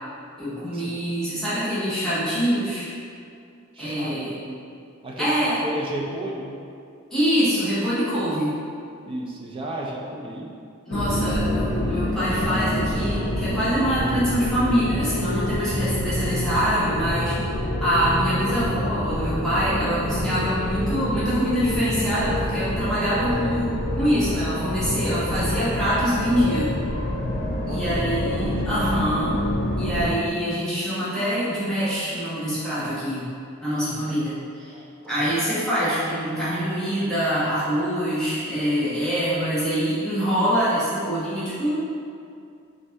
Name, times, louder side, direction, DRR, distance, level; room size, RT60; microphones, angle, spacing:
voice 1, 0.4-2.9 3.8-4.3 5.2-5.6 7.1-8.6 10.8-26.7 27.7-29.4 29.8-33.3 33.6-34.8 35.0-41.8, equal, 5° left, -12 dB, 1.0 m, -25 dB
voice 2, 3.7-4.6 5.0-6.5 9.1-10.5 27.6-28.8 34.7-34.9 35.1-35.3, right 1 dB, 25° right, -2 dB, 0.4 m, -33 dB
sound 1, 10.9-30.1, left 1 dB, 45° left, 0.4 m, -27 dB
3.1 x 2.7 x 3.4 m, 2.4 s
head